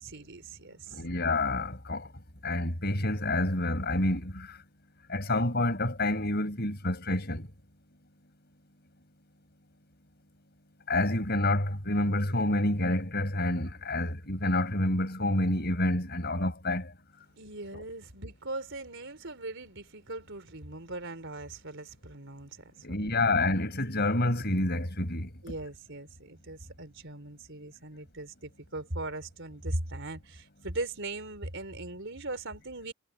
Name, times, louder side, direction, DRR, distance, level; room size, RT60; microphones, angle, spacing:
voice 1, 0.0-1.0 17.4-23.3 25.4-32.9, right 2 dB, 60° right, 4.2 m, -39 dB
voice 2, 0.9-2.0 2.4-4.5 5.1-7.4 10.9-16.9 17.7-17.8 22.8-25.3, left 1 dB, 50° left, 5.8 m, -28 dB
head